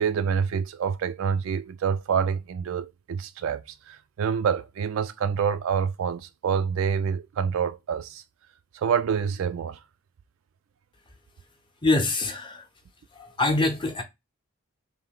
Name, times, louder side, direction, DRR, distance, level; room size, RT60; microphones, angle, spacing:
voice 1, 0.0-8.2 8.7-9.8, right 7 dB, 65° right, 0.3 m, -27 dB
voice 2, 11.8-12.7 13.1-14.0, left 2 dB, 20° left, 0.7 m, -24 dB
3.3 x 2.6 x 3.6 m
head